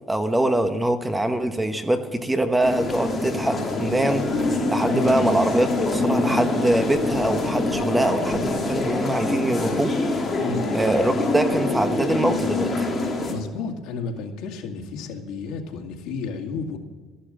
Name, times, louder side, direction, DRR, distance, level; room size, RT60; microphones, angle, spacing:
voice 1, 0.1-10.3 10.7-12.9, right 1 dB, 10° right, 7 dB, 1.1 m, -23 dB
sound 1, 2.6-13.3, left 2 dB, 25° left, 2.9 m, -25 dB
voice 2, 10.4-10.7 13.3-16.8, left 4 dB, 85° left, 3 dB, 2.2 m, -32 dB
13.5 x 12.0 x 7.6 m, 1.4 s
cardioid pair, 145°, 0 cm